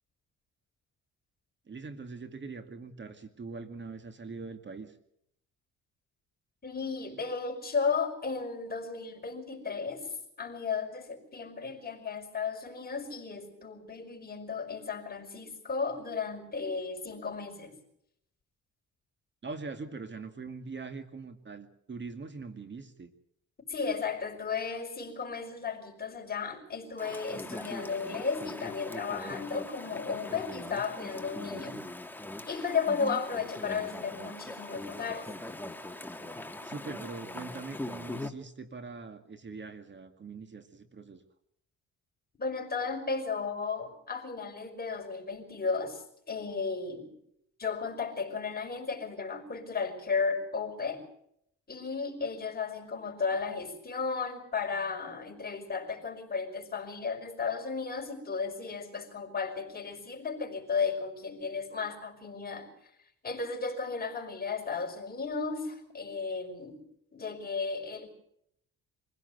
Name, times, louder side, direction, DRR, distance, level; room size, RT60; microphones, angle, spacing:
voice 1, 1.7-5.0 19.4-23.1 36.6-41.2, right 4 dB, 40° right, 2.3 m, -42 dB
voice 2, 6.6-17.7 23.7-31.8 32.5-35.3 42.4-47.1 47.6-51.0 51.7-62.7 63.2-66.8 67.1-68.1, left 5 dB, 30° left, 5.5 m, -34 dB
Chatter / Stream, 27.0-38.3, left 1 dB, 5° left, 1.9 m, -41 dB
24.5 x 16.5 x 8.1 m
cardioid pair, 90°, 30 cm